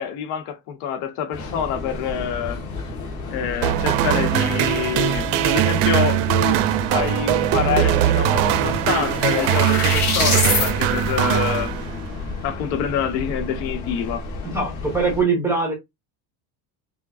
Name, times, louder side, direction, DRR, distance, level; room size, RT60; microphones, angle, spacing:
voice 1, 0.0-2.6 3.3-6.6 6.9-11.7 12.4-14.3, left 8 dB, 80° left, 1.1 m, -26 dB
Train, 1.3-15.2, left 3 dB, 40° left, 1.3 m, -32 dB
sound 1, 3.6-12.2, right 13 dB, 60° right, 0.5 m, -21 dB
sound 2, 8.2-10.7, left 5 dB, 55° left, 2.6 m, -24 dB
voice 2, 14.5-15.7, right 4 dB, 5° right, 0.5 m, -21 dB
5.1 x 2.2 x 2.5 m
cardioid pair, 180°, 46 cm